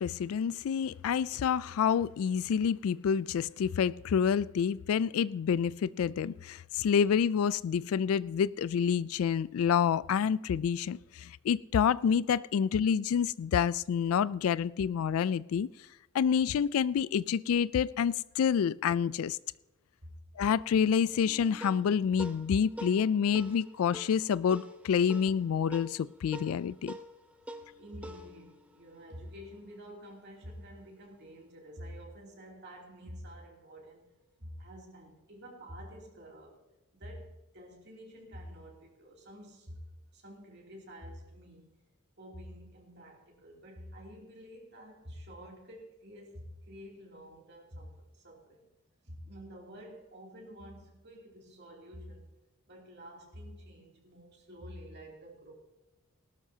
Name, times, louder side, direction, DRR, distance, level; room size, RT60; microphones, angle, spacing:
voice 1, 0.0-15.7 16.1-19.4 20.4-27.0, left 7 dB, 75° left, 0.3 m, -28 dB
sound 1, 21.2-30.0, equal, 5° right, 0.9 m, -47 dB
voice 2, 27.8-34.1 34.4-36.6 36.9-39.8 40.1-41.7 42.2-48.7 49.0-52.3 52.7-55.5, equal, 50° right, 2.8 m, -49 dB
19.0 x 12.5 x 2.8 m
head